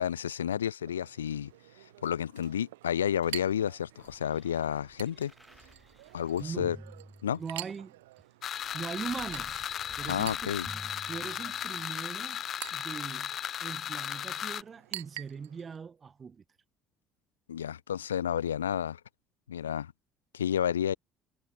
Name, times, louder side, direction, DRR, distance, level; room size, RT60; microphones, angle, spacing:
voice 1, 0.0-1.5 2.0-5.3 6.1-6.8 7.2-7.4 10.1-10.7 17.5-19.0 19.5-19.9 20.3-20.9, left 9 dB, 85° left, 0.4 m, -31 dB
Chink clink, 0.8-15.8, right 18 dB, 80° right, 1.7 m, -48 dB
sound 1, 3.3-7.9 8.6-11.9 12.7-12.8, right 1 dB, 5° right, 3.1 m, -52 dB
voice 2, 6.4-6.8 7.3-8.0 8.7-9.7 9.9-10.5 11.1-12.4 12.7-16.4, right 6 dB, 35° right, 6.7 m, -40 dB
sound 2, 8.4-14.6, left 10 dB, 50° left, 1.3 m, -36 dB
hypercardioid pair, 60°, 0 cm